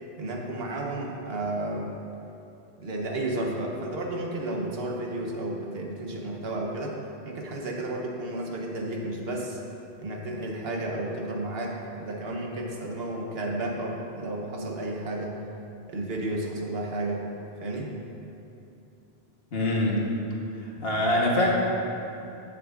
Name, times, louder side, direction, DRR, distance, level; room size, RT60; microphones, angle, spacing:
voice 1, 0.2-1.9 2.8-7.0 7.2-9.6 10.0-15.4 15.9-17.3 17.6-17.9, right 1 dB, 70° right, 0 dB, 1.2 m, -32 dB
voice 2, 19.5-20.1 20.8-21.5, left 1 dB, 70° left, -3 dB, 1.5 m, -24 dB
14.5 x 6.1 x 2.5 m, 2.8 s
omnidirectional pair, 1.1 m